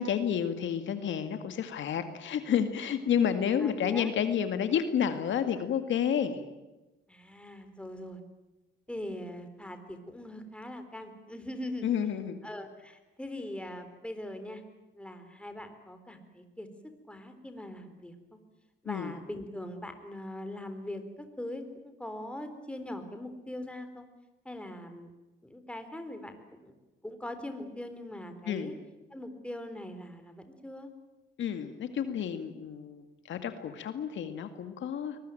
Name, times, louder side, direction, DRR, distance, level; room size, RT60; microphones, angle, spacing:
voice 1, 0.0-6.4 11.8-12.4 18.9-19.1 28.5-28.7 31.4-35.2, left 8 dB, 70° left, 9 dB, 2.0 m, -30 dB
voice 2, 3.6-4.1 7.1-8.2 8.9-11.9 12.4-14.6 14.9-16.7 17.1-18.2 18.8-24.1 24.4-25.1 25.4-26.7 27.0-28.7 29.1-30.9, left 1 dB, 5° left, 8 dB, 3.9 m, -41 dB
23.0 x 20.5 x 9.1 m, 1.1 s
cardioid pair, 90°, 20 cm